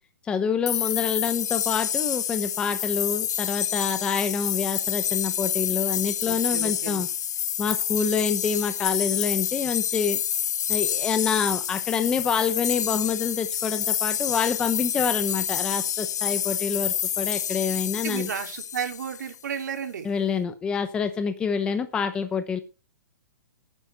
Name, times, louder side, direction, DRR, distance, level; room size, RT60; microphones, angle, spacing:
voice 1, 0.2-7.1 7.6-10.2 10.7-18.3 20.0-22.6, left 6 dB, 10° left, 9 dB, 0.8 m, -27 dB
sound 1, 0.7-19.3, left 9 dB, 70° left, 0.8 m, -28 dB
voice 2, 6.3-7.0 18.0-20.1, right 7 dB, 75° right, 4 dB, 3.5 m, -33 dB
12.0 x 9.5 x 5.5 m, 0.33 s
hypercardioid pair, 165°, 10 cm